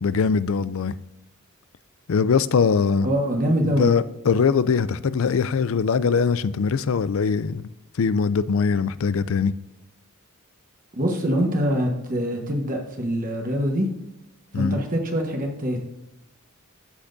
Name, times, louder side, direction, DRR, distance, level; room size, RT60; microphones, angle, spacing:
voice 1, 0.0-0.9 2.1-3.1 3.6-7.7 8.0-9.5 14.5-14.8, left 5 dB, 65° left, 16 dB, 0.4 m, -22 dB
voice 2, 3.0-3.9 10.9-13.9 14.5-15.8, equal, 40° right, 2 dB, 1.2 m, -24 dB
14.5 x 6.0 x 2.6 m, 0.91 s
head